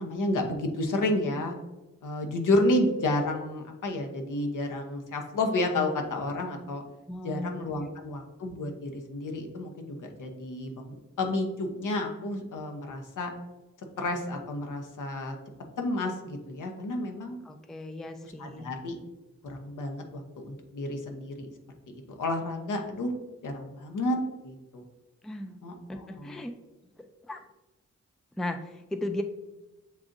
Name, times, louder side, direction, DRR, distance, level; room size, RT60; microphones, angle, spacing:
voice 1, 0.0-1.5 2.0-6.8 7.2-13.3 14.0-15.4 15.8-17.4 18.4-19.0 19.4-21.5 21.9-23.1 23.4-24.2 24.4-24.8 25.6-26.4, left 2 dB, 70° left, 3 dB, 0.8 m, -31 dB
voice 2, 7.1-7.5 7.8-7.9 17.4-18.7 25.2-25.6 25.9-26.5 27.0-27.4 28.4-29.2, left 1 dB, ahead, 7 dB, 0.4 m, -36 dB
7.2 x 2.6 x 2.5 m, 1.1 s
cardioid pair, 45°, 32 cm